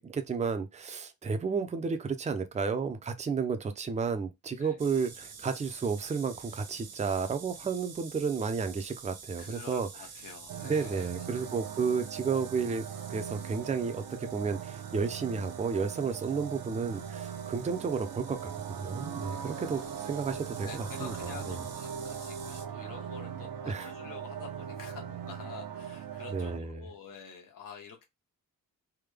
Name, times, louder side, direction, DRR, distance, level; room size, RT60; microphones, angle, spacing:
voice 1, 0.0-9.9 10.6-12.8 13.1-21.1 23.7-23.9 26.3-26.9, right 5 dB, 20° right, 0.4 m, -32 dB
sound 1, 4.8-22.7, right 5 dB, 50° right, 0.8 m, -49 dB
voice 2, 9.4-11.7 19.4-20.2 20.6-28.0, left 6 dB, 70° left, 1.2 m, -48 dB
sound 2, 10.5-26.6, right 8 dB, 85° right, 0.7 m, -40 dB
3.5 x 2.1 x 3.2 m
wide cardioid pair, 155°, 35 cm